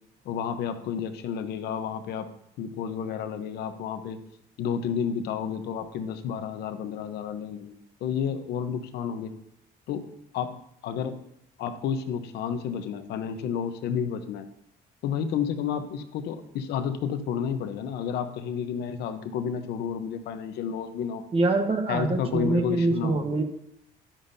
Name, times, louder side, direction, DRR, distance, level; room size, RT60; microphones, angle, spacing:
voice 1, 0.2-2.3 2.6-4.2 4.6-9.3 9.9-10.0 10.3-11.2 11.6-14.5 15.0-21.2 21.9-23.2, left 7 dB, 80° left, 9 dB, 0.9 m, -31 dB
voice 2, 21.3-23.4, right 3 dB, 35° right, 5 dB, 1.2 m, -24 dB
11.5 x 9.0 x 2.7 m, 0.77 s
cardioid pair, 110°, 17 cm